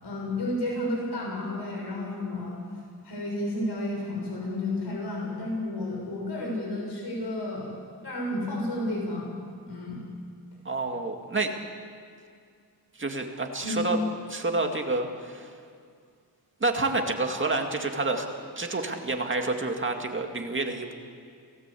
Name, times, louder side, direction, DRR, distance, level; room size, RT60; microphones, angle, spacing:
voice 1, 0.0-2.6 3.0-7.7 8.0-9.3 9.6-10.0 13.6-13.9, left 1 dB, 85° left, -1 dB, 6.7 m, -31 dB
voice 2, 10.7-11.5 13.0-14.0 14.3-15.5 16.6-20.9, right 2 dB, 30° right, 3 dB, 2.1 m, -29 dB
29.0 x 18.5 x 8.5 m, 2.3 s
wide cardioid pair, 170°, 39 cm